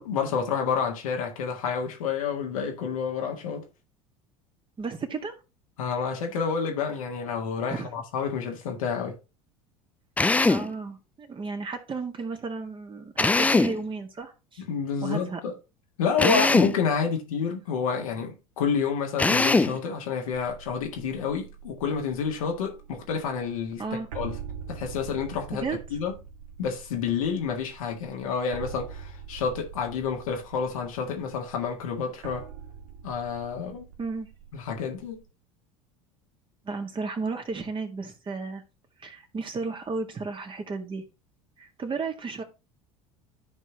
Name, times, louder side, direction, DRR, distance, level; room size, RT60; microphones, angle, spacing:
voice 1, 0.0-3.6 5.8-9.2 14.6-15.5 16.0-23.8 24.1-24.4 24.7-25.6 25.9-26.1 26.6-32.5 33.0-33.9 34.5-35.2, left 6 dB, 75° left, 1.7 m, -29 dB
voice 2, 4.8-5.3 7.7-7.9 10.5-14.6 15.0-15.4 23.8-24.1 25.5-25.8 34.0-34.3 36.6-38.6 39.0-41.0 41.6-42.4, right 4 dB, 30° right, 1.8 m, -33 dB
Drill, 10.2-10.7 13.2-13.8 16.2-16.8 19.2-19.8, left 3 dB, 10° left, 0.4 m, -21 dB
sound 1, 20.3-35.2, right 7 dB, 75° right, 1.6 m, -44 dB
13.5 x 4.6 x 2.9 m
hypercardioid pair, 75°, 18 cm